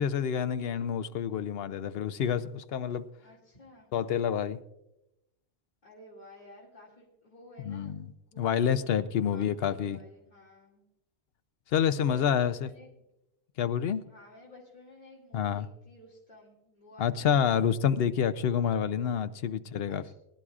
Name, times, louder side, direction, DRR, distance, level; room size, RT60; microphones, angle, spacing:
voice 1, 0.0-3.0 3.9-4.6 7.7-8.1 8.4-10.0 11.7-12.7 13.6-14.0 15.3-15.7 17.0-20.1, left 8 dB, 65° left, 13 dB, 0.8 m, -28 dB
voice 2, 3.2-3.9 5.8-10.8 12.0-12.9 14.0-17.7 19.9-20.1, left 1 dB, 45° left, -6 dB, 2.6 m, -53 dB
21.5 x 11.5 x 2.4 m, 0.91 s
omnidirectional pair, 1.1 m